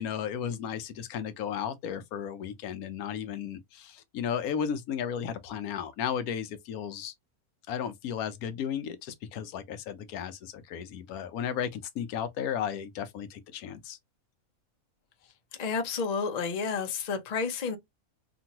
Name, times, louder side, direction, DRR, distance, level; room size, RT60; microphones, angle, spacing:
voice 1, 0.0-7.1 7.7-14.0, left 8 dB, 80° left, 1.1 m, -34 dB
voice 2, 15.6-17.8, left 5 dB, 45° left, 0.5 m, -30 dB
2.9 x 2.5 x 2.8 m
omnidirectional pair, 1.6 m